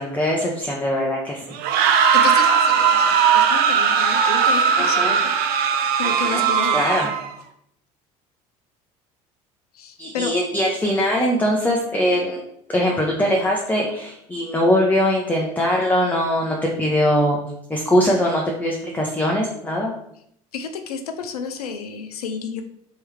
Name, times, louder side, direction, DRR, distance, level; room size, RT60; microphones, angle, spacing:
voice 1, 0.0-1.6 4.8-5.1 6.0-7.1 10.0-12.4 12.7-17.4 17.7-19.9, equal, 10° left, -1 dB, 0.7 m, -21 dB
sound 1, 1.5-7.3, right 6 dB, 55° right, 0.5 m, -18 dB
voice 2, 2.1-5.5 6.0-6.9 9.7-10.3 20.5-22.6, left 5 dB, 85° left, 7 dB, 0.4 m, -31 dB
3.4 x 3.1 x 3.1 m, 0.72 s
hypercardioid pair, 70°, 19 cm